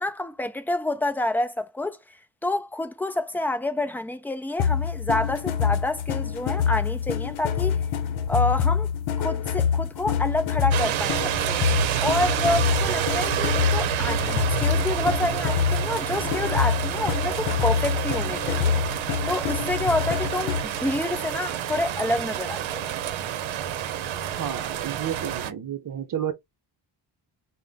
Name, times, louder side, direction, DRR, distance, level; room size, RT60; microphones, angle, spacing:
voice 1, 0.0-2.0 2.4-7.8 8.3-8.9 9.2-11.7 12.0-18.8 19.3-22.9, left 1 dB, 5° left, 0.3 m, -28 dB
sound 1, 4.6-20.8, left 7 dB, 90° left, 0.8 m, -26 dB
sound 2, 10.7-25.5, right 10 dB, 80° right, 0.8 m, -28 dB
voice 2, 24.2-26.3, right 9 dB, 45° right, 0.7 m, -31 dB
5.6 x 2.2 x 3.4 m
wide cardioid pair, 145°, 46 cm